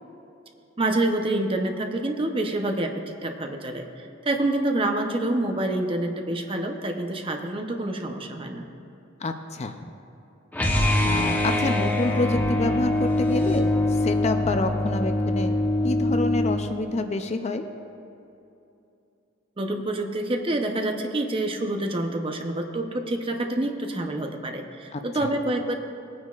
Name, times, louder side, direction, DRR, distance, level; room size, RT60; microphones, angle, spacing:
voice 1, 0.8-2.9 3.2-3.9 4.2-8.6 19.6-25.8, right 1 dB, 25° right, 4 dB, 0.7 m, -27 dB
voice 2, 9.2-9.9 11.0-15.6 15.8-17.6 24.9-25.3, left 2 dB, 35° left, 7 dB, 0.5 m, -28 dB
sound 1, 10.5-16.6, left 1 dB, 10° left, 0.9 m, -23 dB
19.0 x 9.5 x 2.4 m, 2.8 s
head